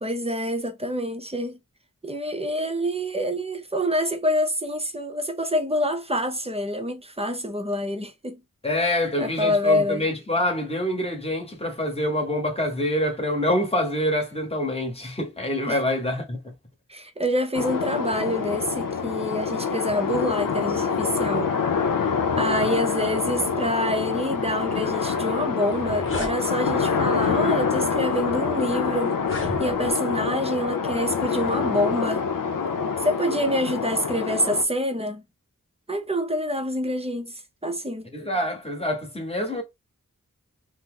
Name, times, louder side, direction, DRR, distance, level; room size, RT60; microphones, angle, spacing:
voice 1, 0.0-1.6 2.0-8.4 8.8-10.1 15.7-15.8 16.9-21.5 22.3-32.2 33.0-35.2 35.9-38.1, equal, 20° right, 0.7 m, -26 dB
voice 2, 8.6-16.4 38.1-39.6, left 1 dB, 20° left, 1.1 m, -26 dB
sound 1, 17.5-34.6, left 5 dB, 80° left, 0.6 m, -26 dB
sound 2, 25.7-26.4 27.2-27.4 28.1-28.2 29.1-30.0, left 2 dB, 40° left, 1.0 m, -33 dB
2.8 x 2.1 x 3.6 m
wide cardioid pair, 60°, 33 cm